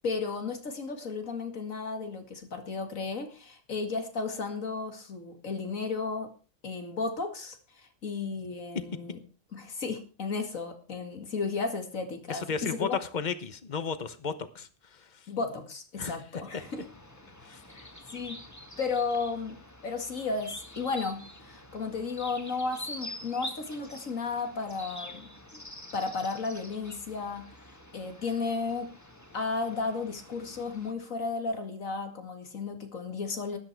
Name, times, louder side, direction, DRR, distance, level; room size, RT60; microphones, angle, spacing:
voice 1, 0.0-6.3 6.6-9.2 9.5-13.0 15.3-16.8 17.7-18.4 18.8-25.6 25.9-28.9 29.3-33.6, left 4 dB, 80° left, 6 dB, 2.5 m, -34 dB
voice 2, 12.3-15.2 16.0-16.2 17.4-17.6, left 6 dB, 35° left, 12 dB, 1.1 m, -34 dB
sound 1, 16.6-30.9, left 1 dB, 15° left, 1.7 m, -46 dB
13.0 x 11.5 x 4.6 m, 0.37 s
omnidirectional pair, 1.4 m